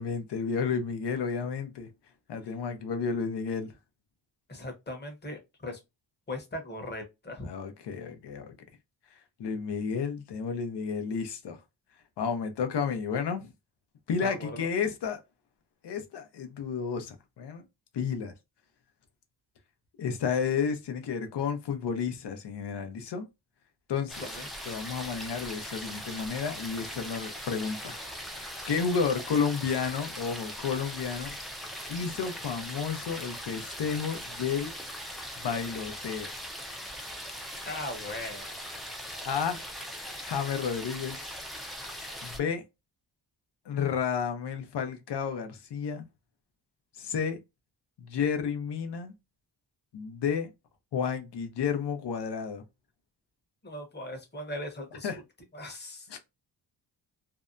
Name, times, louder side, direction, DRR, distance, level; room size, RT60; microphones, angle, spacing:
voice 1, 0.0-1.9 2.3-3.7 7.4-8.6 9.4-11.6 12.2-13.5 14.1-15.2 15.8-17.6 17.9-18.3 20.0-23.3 23.9-24.2 24.7-31.4 31.9-34.7 35.4-36.3 39.2-39.6 40.2-41.4 42.2-42.6 43.7-46.0 47.0-47.4 48.0-49.1 49.9-50.5 50.9-52.6 55.0-55.2 56.1-56.2, left 6 dB, 70° left, 0.7 m, -31 dB
voice 2, 4.5-5.8 6.3-7.5 14.2-14.7 24.2-24.5 37.7-38.6 53.6-55.1 55.5-56.1, left 1 dB, 25° left, 0.9 m, -39 dB
sound 1, 24.1-42.4, equal, ahead, 0.4 m, -40 dB
2.7 x 2.2 x 2.4 m
wide cardioid pair, 105°, 42 cm